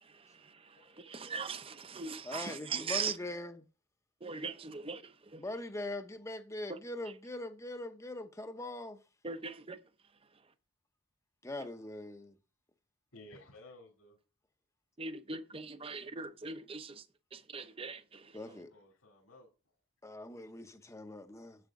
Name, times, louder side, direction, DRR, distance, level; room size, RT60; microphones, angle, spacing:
voice 1, 0.0-3.2 4.2-5.4 6.7-6.8 9.2-9.8 10.3-10.5 15.0-17.1 17.3-18.6, right 5 dB, 25° right, 0.6 m, -41 dB
voice 2, 0.7-1.2 13.1-14.2 18.4-19.7, left 1 dB, 70° left, 2.6 m, -56 dB
voice 3, 2.3-3.6 5.4-9.0 11.4-12.4 18.3-18.7 20.0-21.6, left 1 dB, 15° left, 0.7 m, -42 dB
8.0 x 7.6 x 3.6 m
head